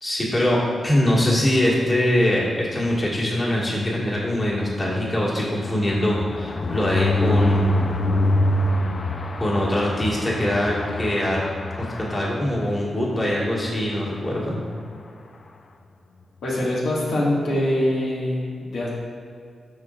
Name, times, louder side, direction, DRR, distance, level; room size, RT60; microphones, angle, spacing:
voice 1, 0.0-7.8 9.4-11.4 11.8-14.6, left 1 dB, 30° left, -5 dB, 1.7 m, -23 dB
sound 1, 4.1-12.9 13.3-13.5 13.7-13.8 14.1-14.4, left 1 dB, 50° left, 0.5 m, -25 dB
voice 2, 16.4-18.9, left 1 dB, 85° left, -6 dB, 1.7 m, -23 dB
12.0 x 4.7 x 2.4 m, 2.3 s
cardioid pair, 100°, 0 cm